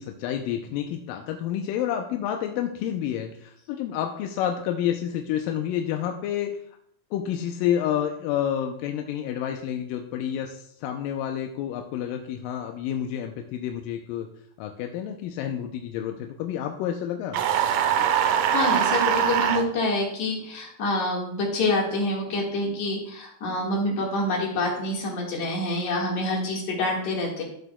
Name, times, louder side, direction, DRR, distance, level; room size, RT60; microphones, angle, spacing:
voice 1, 0.0-6.5 7.1-14.3 14.6-17.4 17.9-18.1, left 10 dB, 80° left, 4 dB, 2.2 m, -29 dB
sound 1, 17.3-19.6, right 9 dB, 80° right, 2.3 m, -22 dB
voice 2, 18.5-27.4, left 2 dB, 60° left, -1 dB, 2.8 m, -27 dB
14.0 x 7.8 x 2.3 m, 0.70 s
omnidirectional pair, 4.0 m